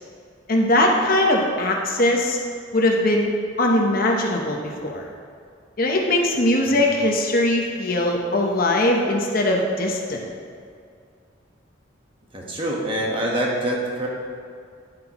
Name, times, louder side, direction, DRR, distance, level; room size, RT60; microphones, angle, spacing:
voice 1, 0.5-2.4 2.7-3.3 3.6-5.1 5.8-10.2, left 1 dB, 50° left, 0 dB, 0.9 m, -20 dB
voice 2, 12.3-14.1, right 1 dB, 25° right, -2 dB, 1.2 m, -25 dB
10.5 x 7.8 x 3.0 m, 2.3 s
head